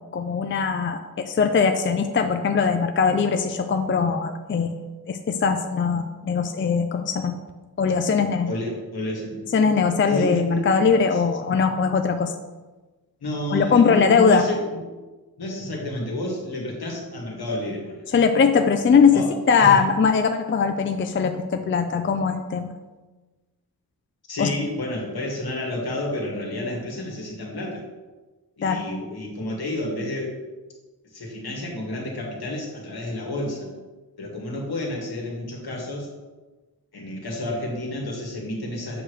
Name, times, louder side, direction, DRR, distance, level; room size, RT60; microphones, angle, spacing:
voice 1, 0.1-1.0 1.2-7.4 7.8-8.5 9.5-12.3 13.5-14.4 18.1-19.1 19.5-22.8 24.4-24.5 28.6-28.8, left 5 dB, 30° left, 6 dB, 0.4 m, -20 dB
voice 2, 8.5-9.4 10.1-10.6 11.1-11.2 13.2-14.8 15.4-18.0 19.1-19.8 24.3-27.8 28.6-30.3 31.1-33.7 34.2-36.1 36.9-39.0, left 1 dB, 75° left, -2 dB, 2.0 m, -30 dB
7.9 x 3.3 x 6.3 m, 1.2 s
wide cardioid pair, 135°, 38 cm